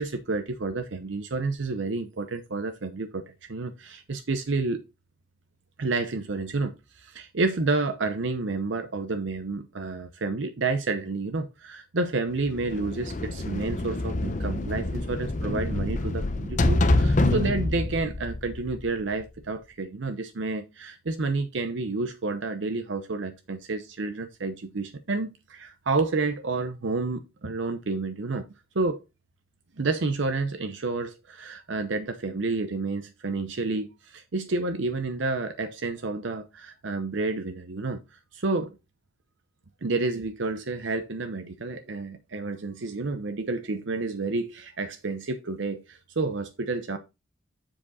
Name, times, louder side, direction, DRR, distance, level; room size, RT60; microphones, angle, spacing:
voice 1, 0.0-4.8 5.8-28.5 28.7-29.0 29.8-38.0 38.3-38.8 39.8-47.0, right 3 dB, 75° right, 0.7 m, -30 dB
sound 1, 12.5-19.2, left 2 dB, 40° left, 0.7 m, -26 dB
7.3 x 5.0 x 4.0 m
head